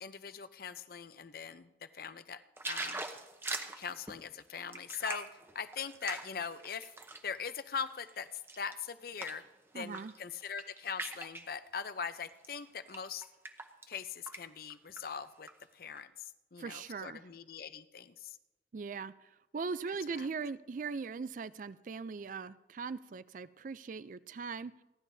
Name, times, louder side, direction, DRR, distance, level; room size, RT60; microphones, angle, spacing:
voice 1, 0.0-2.4 2.7-3.0 3.8-5.3 5.5-6.9 7.2-9.4 9.7-13.3 13.9-15.5 15.7-18.4 20.1-20.3, left 6 dB, 50° left, 12 dB, 0.6 m, -41 dB
sound 1, 2.6-7.3 7.8-9.5 9.8-10.2 10.4-11.5 12.3-12.5 12.9-14.0 14.3-14.4 14.7-15.5 16.0-16.1, right 2 dB, 15° right, 0.8 m, -42 dB
voice 2, 9.7-10.1 16.6-17.3 18.7-19.1 19.5-24.7, right 5 dB, 45° right, 16 dB, 0.3 m, -40 dB
29.0 x 11.0 x 2.7 m, 0.98 s
head